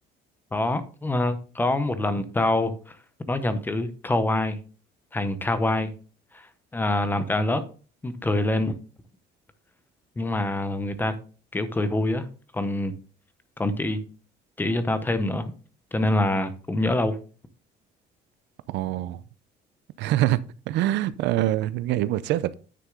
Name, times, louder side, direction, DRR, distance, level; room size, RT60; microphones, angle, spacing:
voice 1, 0.5-3.0 3.3-4.6 5.1-5.9 6.3-6.5 6.7-7.6 8.0-8.7 10.2-11.2 11.5-12.2 12.5-12.9 13.6-14.0 14.6-15.5 15.9-17.2, left 2 dB, 10° left, 0.7 m, -25 dB
voice 2, 18.7-19.2 20.0-20.4 20.7-22.5, right 14 dB, 80° right, 0.6 m, -24 dB
9.6 x 6.2 x 3.8 m
cardioid pair, 180°, 18 cm